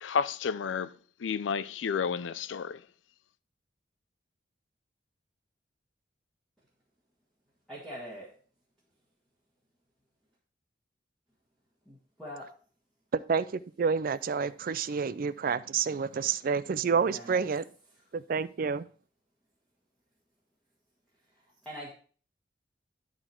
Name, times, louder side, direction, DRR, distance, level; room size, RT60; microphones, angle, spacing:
voice 1, 0.0-0.9 1.2-2.8, left 6 dB, 80° left, 0.4 m, -31 dB
voice 2, 7.7-8.3 11.9-12.5 16.9-17.4 21.6-21.9, equal, ahead, 1.8 m, -43 dB
voice 3, 13.1-13.5 13.8-17.6 18.1-18.8, right 5 dB, 50° right, 0.4 m, -29 dB
11.5 x 4.0 x 4.4 m
head